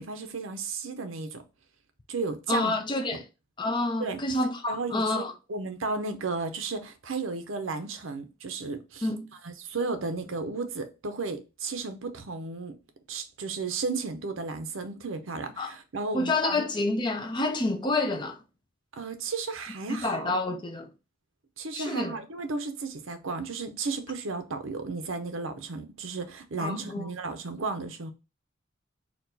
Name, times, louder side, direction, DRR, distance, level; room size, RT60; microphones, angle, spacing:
voice 1, 0.0-1.4 2.1-2.7 3.1-3.2 4.0-4.2 4.7-5.2 5.5-9.1 9.4-12.8 13.1-16.6 19.0-20.3 21.6-28.1, right 4 dB, 90° right, 0.7 m, -34 dB
voice 2, 2.5-3.2 3.6-5.3 9.0-9.3 15.6-15.7 16.1-18.4 19.9-20.9 21.7-22.2 26.6-27.0, left 2 dB, 25° left, 0.5 m, -28 dB
4.4 x 2.4 x 4.0 m
head